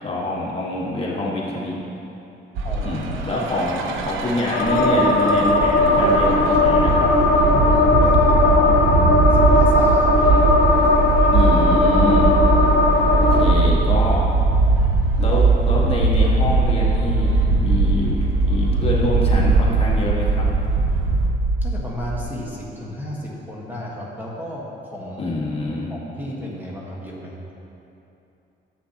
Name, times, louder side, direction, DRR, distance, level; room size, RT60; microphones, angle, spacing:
voice 1, 0.0-1.8 2.8-7.1 11.3-12.3 13.0-14.3 15.2-20.5 25.2-25.9, left 1 dB, 30° left, -5 dB, 1.5 m, -26 dB
voice 2, 2.6-3.4 7.6-9.1 9.3-10.5 21.6-25.3 25.9-27.4, left 1 dB, 10° right, -5 dB, 1.4 m, -33 dB
sound 1, 2.6-21.3, right 3 dB, 85° right, 0.7 m, -21 dB
sound 2, 4.5-13.4, left 2 dB, 60° left, 1.3 m, -17 dB
sound 3, 9.0-22.2, right 2 dB, 50° right, 0.5 m, -23 dB
10.0 x 7.7 x 2.9 m, 2.8 s
cardioid pair, 90°, 20 cm